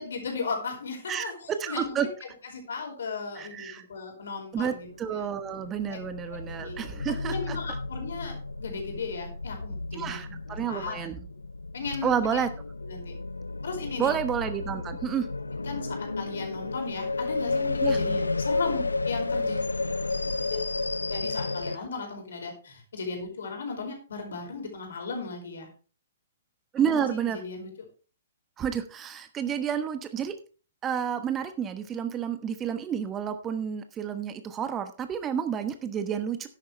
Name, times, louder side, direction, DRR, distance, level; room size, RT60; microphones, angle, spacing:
voice 1, 0.0-2.0 2.5-5.3 5.9-6.0 6.3-6.8 7.1-8.3 8.6-11.2 11.7-12.4 12.8-13.1 13.6-14.1 15.6-19.7 20.5-20.7 21.1-25.7 26.8-27.7, left 4 dB, 65° left, 3 dB, 4.7 m, -36 dB
voice 2, 1.1-2.1 3.3-3.8 4.5-7.6 9.9-11.2 12.0-12.5 14.0-15.3 17.8-18.0 26.7-27.4 28.6-30.4 30.8-36.5, right 8 dB, 20° right, 9 dB, 1.0 m, -30 dB
sound 1, 4.9-21.8, left 3 dB, 85° left, 0.5 m, -32 dB
13.0 x 10.5 x 3.3 m, 0.36 s
figure-of-eight pair, 120°, 0 cm